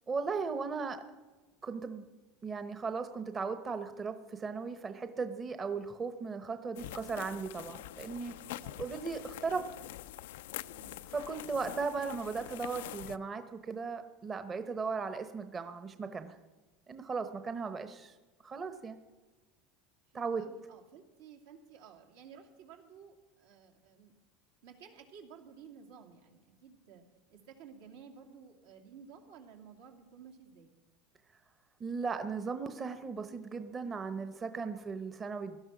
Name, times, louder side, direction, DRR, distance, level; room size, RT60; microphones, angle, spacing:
voice 1, 0.1-1.0 1.6-2.1 2.4-8.4 8.8-9.6 11.1-16.3 16.9-18.1 18.4-19.0 20.1-20.4 31.8-35.6, right 4 dB, 25° right, 9 dB, 0.9 m, -37 dB
sound 1, 6.8-13.2, left 14 dB, 85° left, 0.4 m, -45 dB
voice 2, 8.6-8.9 10.7-11.0 20.1-24.1 24.6-27.0 27.3-30.7, right 7 dB, 85° right, 2 dB, 2.5 m, -54 dB
17.0 x 12.0 x 6.0 m, 1.2 s
supercardioid pair, 120°, 0 cm